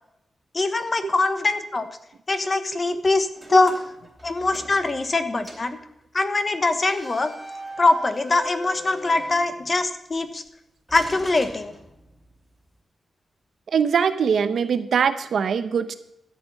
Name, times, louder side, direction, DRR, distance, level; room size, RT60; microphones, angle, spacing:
voice 1, 0.5-1.9 2.3-3.7 4.2-5.8 6.1-7.3 7.8-10.4 10.9-11.7, left 2 dB, 35° left, 10 dB, 1.1 m, -22 dB
sound 1, 3.3-5.2 5.4-5.8 6.8-10.0 10.9-12.3, equal, ahead, 2.8 m, -41 dB
voice 2, 13.7-15.9, right 7 dB, 75° right, 11 dB, 0.9 m, -22 dB
13.0 x 8.6 x 5.5 m, 0.81 s
wide cardioid pair, 110°, 0 cm